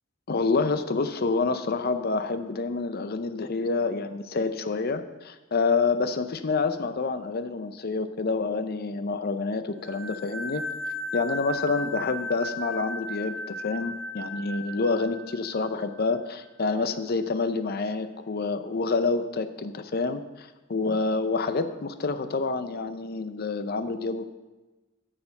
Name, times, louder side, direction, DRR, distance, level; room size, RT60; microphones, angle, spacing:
voice 1, 0.3-10.6 11.1-24.3, left 4 dB, 50° left, 10 dB, 0.6 m, -28 dB
sound 1, 9.8-16.3, left 1 dB, 5° right, 2.2 m, -36 dB
9.7 x 6.6 x 5.4 m, 1.1 s
head